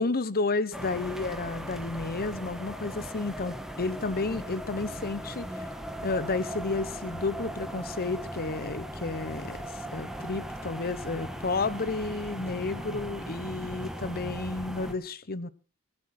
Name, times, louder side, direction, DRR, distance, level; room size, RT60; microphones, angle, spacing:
voice 1, 0.0-5.7 6.0-9.6 9.9-15.5, left 3 dB, 45° left, 16 dB, 1.0 m, -31 dB
sound 1, 0.7-14.9, equal, ahead, 1.9 m, -38 dB
25.0 x 9.3 x 4.3 m, 0.34 s
head